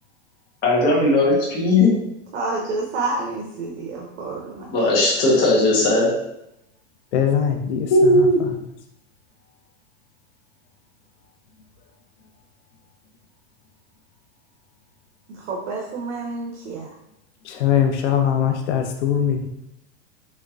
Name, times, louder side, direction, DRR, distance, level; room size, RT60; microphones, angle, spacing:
voice 1, 0.6-1.9 4.7-6.1 7.9-8.4, left 1 dB, 25° left, -4 dB, 1.2 m, -17 dB
voice 2, 2.3-4.7 15.3-16.9, right 3 dB, 80° right, -2 dB, 0.8 m, -29 dB
voice 3, 7.1-8.6 17.4-19.5, left 9 dB, 80° left, 5 dB, 0.8 m, -22 dB
4.4 x 3.1 x 2.5 m, 0.82 s
supercardioid pair, 155°, 35 cm